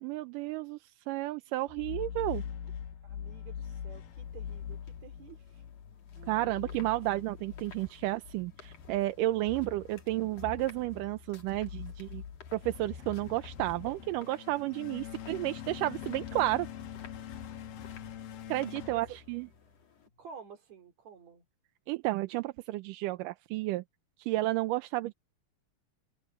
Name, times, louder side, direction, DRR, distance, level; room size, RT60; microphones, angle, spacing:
voice 1, 0.0-0.8 1.1-2.4 6.3-12.2 12.5-16.7 18.5-19.5 21.9-23.8 24.2-25.1, right 17 dB, 80° right, 2.2 m, -32 dB
sound 1, 1.7-19.8, left 8 dB, 80° left, 3.3 m, -43 dB
voice 2, 3.0-5.6 6.1-6.5 18.8-19.2 20.2-21.4, right 7 dB, 55° right, 3.6 m, -51 dB
sound 2, 4.1-20.1, left 5 dB, 45° left, 3.9 m, -58 dB
open air
omnidirectional pair, 4.1 m